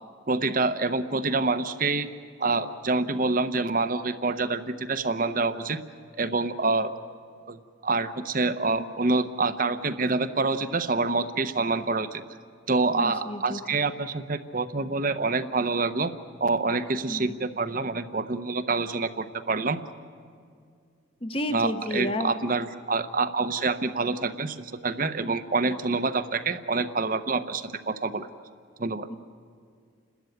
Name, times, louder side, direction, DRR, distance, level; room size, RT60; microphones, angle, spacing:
voice 1, 0.3-2.1 2.4-5.8 6.2-7.0 7.5-12.2 12.7-16.1 16.4-19.8 21.5-28.3 28.8-29.1, right 3 dB, 45° right, 11 dB, 0.9 m, -27 dB
voice 2, 12.9-13.6 17.1-17.4 21.2-22.3 29.1-29.2, left 1 dB, 30° left, 9 dB, 1.1 m, -31 dB
30.0 x 13.0 x 9.3 m, 2.2 s
head